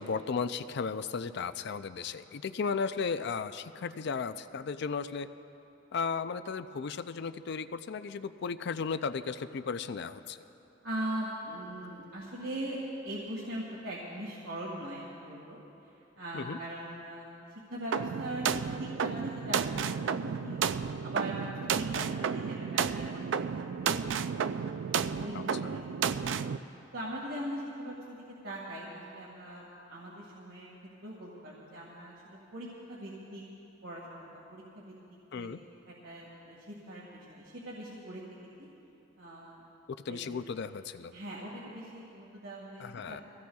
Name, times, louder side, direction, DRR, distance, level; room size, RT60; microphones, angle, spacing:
voice 1, 0.0-5.3 5.9-10.4 16.3-16.6 35.3-35.6 40.1-41.1 42.8-43.2, left 5 dB, 60° left, 12 dB, 0.4 m, -35 dB
voice 2, 10.8-12.8 13.0-15.6 15.8-17.4 17.7-20.7 21.0-25.9 26.9-30.7 31.0-33.4 33.8-34.9 35.3-35.5 35.9-38.2 38.6-38.7 39.2-39.6 40.0-40.3 41.1-43.2, right 1 dB, 85° right, -5 dB, 1.9 m, -41 dB
sound 1, 17.9-26.6, right 6 dB, 65° right, 0.4 m, -32 dB
23.5 x 16.0 x 2.3 m, 2.9 s
head